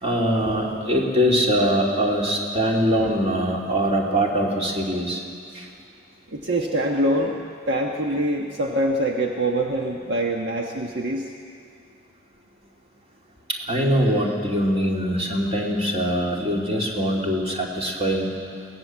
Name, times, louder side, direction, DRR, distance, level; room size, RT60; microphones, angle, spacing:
voice 1, 0.0-5.2 5.5-5.6 13.7-18.4, equal, 30° right, -1 dB, 2.8 m, -22 dB
voice 2, 6.3-7.4 7.7-11.3, right 1 dB, 55° right, 0 dB, 1.3 m, -24 dB
22.5 x 18.5 x 7.6 m, 2.3 s
head